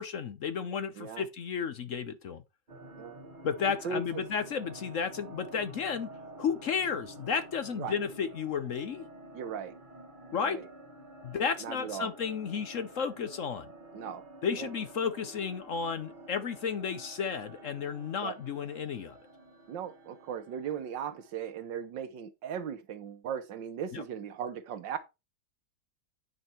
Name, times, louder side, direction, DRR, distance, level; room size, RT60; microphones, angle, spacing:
voice 1, 0.0-2.4 3.4-6.1 6.4-9.1 10.3-10.6 11.2-13.7 14.4-19.2 23.9-24.0, left 6 dB, 55° left, 1.0 m, -33 dB
sound 1, 2.7-21.6, right 1 dB, 30° right, 1.6 m, -50 dB
voice 2, 3.8-4.2 7.7-8.0 9.3-9.8 10.3-10.7 11.6-12.1 13.9-14.2 14.5-14.7 18.2-18.3 19.7-25.0, right 7 dB, 90° right, 1.7 m, -38 dB
9.2 x 5.4 x 4.4 m
omnidirectional pair, 1.9 m